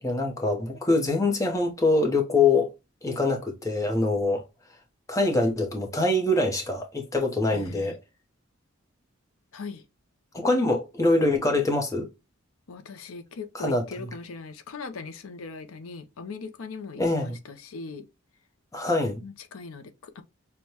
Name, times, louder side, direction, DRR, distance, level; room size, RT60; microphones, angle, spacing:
voice 1, 0.0-2.7 3.0-4.4 5.1-8.0 10.3-12.1 13.5-13.8 17.0-17.4 18.7-19.2, left 2 dB, 15° left, 0.7 m, -24 dB
voice 2, 7.5-8.0 9.5-9.8 12.7-18.1 19.2-20.2, left 4 dB, 80° left, 0.5 m, -40 dB
6.3 x 2.2 x 2.8 m
head